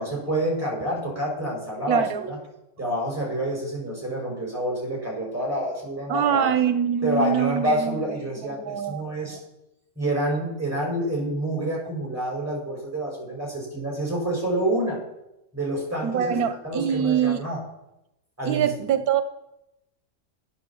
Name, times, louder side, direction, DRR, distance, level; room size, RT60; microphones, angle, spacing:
voice 1, 0.0-2.4 2.8-6.5 7.0-9.4 9.9-15.0 15.5-16.3 16.6-17.6 18.4-18.7, right 1 dB, 10° right, -3 dB, 5.1 m, -28 dB
voice 2, 1.9-2.2 6.1-8.0 8.5-9.4 16.0-17.4 18.4-19.2, right 8 dB, 85° right, 9 dB, 1.2 m, -24 dB
9.9 x 8.6 x 7.0 m, 0.90 s
omnidirectional pair, 1.6 m